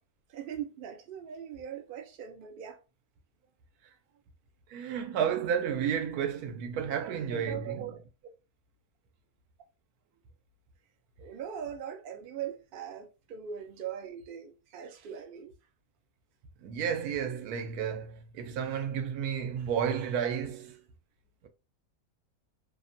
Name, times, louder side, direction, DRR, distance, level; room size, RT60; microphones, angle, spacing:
voice 1, 0.3-2.8 7.0-8.0 11.2-15.5, right 9 dB, 65° right, 0.5 m, -40 dB
voice 2, 4.7-7.9 16.6-20.8, right 8 dB, 90° right, 1.1 m, -32 dB
2.8 x 2.1 x 2.5 m
omnidirectional pair, 1.5 m